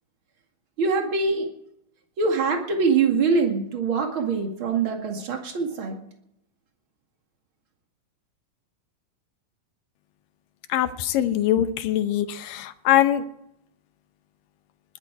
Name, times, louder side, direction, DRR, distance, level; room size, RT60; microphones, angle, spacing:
voice 1, 0.8-1.5 2.2-6.0, right 4 dB, 40° right, 3 dB, 2.5 m, -23 dB
voice 2, 10.7-13.2, left 12 dB, 75° left, 11 dB, 2.5 m, -22 dB
20.5 x 13.0 x 4.7 m, 0.78 s
omnidirectional pair, 4.1 m